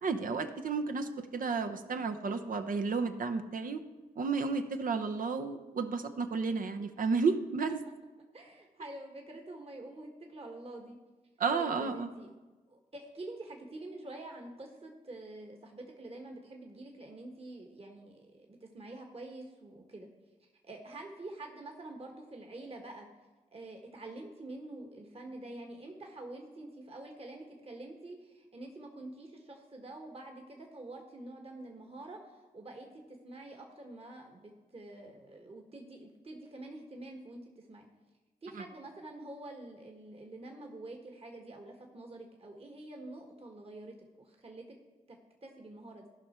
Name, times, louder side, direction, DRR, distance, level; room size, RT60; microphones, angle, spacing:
voice 1, 0.0-3.8 4.2-7.8 11.4-12.1 38.5-38.6, right 4 dB, 60° right, 7 dB, 0.9 m, -32 dB
voice 2, 8.3-11.0 11.5-12.3 12.7-20.1 20.6-23.1 23.5-37.9 38.4-44.8 45.1-46.1, right 2 dB, 40° right, 2 dB, 1.5 m, -47 dB
14.5 x 5.5 x 4.4 m, 1.2 s
cardioid pair, 50°, 16 cm